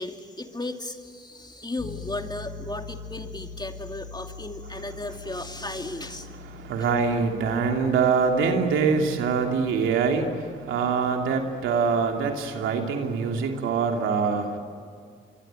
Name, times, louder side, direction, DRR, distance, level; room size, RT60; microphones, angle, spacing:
voice 1, 0.0-6.3, left 2 dB, 20° left, 5 dB, 2.7 m, -35 dB
Piano, 1.8-12.6, left 5 dB, 70° left, 6.0 m, -44 dB
voice 2, 6.2-14.6, right 5 dB, 85° right, 3 dB, 2.9 m, -24 dB
26.0 x 23.0 x 9.1 m, 2.1 s
supercardioid pair, 50°, 20 cm